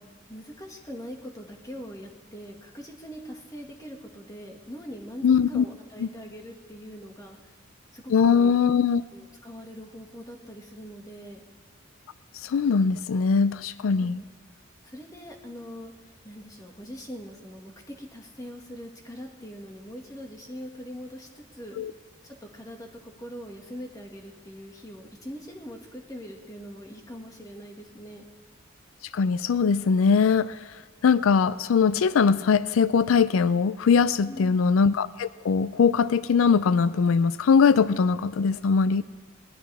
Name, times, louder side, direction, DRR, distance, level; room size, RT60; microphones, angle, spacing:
voice 1, 0.3-7.6 7.9-8.6 9.1-11.4 14.0-14.2 14.8-21.8 22.2-28.3 34.2-34.6, equal, 15° left, 1 dB, 1.9 m, -42 dB
voice 2, 5.2-5.6 6.0-6.1 8.1-9.0 12.3-14.2 21.8-21.9 29.1-30.6 31.0-39.0, left 5 dB, 85° left, 16 dB, 0.4 m, -21 dB
20.5 x 19.5 x 3.5 m, 1.4 s
head